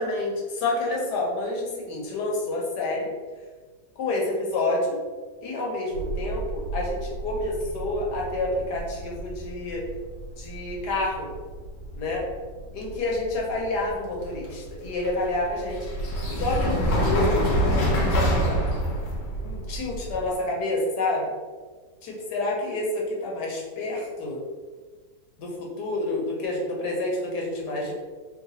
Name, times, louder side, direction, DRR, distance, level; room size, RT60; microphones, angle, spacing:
voice 1, 0.0-3.1 4.0-5.0 5.4-9.8 10.4-11.3 12.0-12.3 12.7-15.8 16.3-18.6 19.4-21.3 22.0-24.4 25.4-27.9, left 2 dB, 75° left, -2 dB, 1.5 m, -28 dB
sound 1, 5.9-20.3, equal, 90° left, 1.5 m, -28 dB
3.9 x 2.2 x 4.1 m, 1.4 s
omnidirectional pair, 1.9 m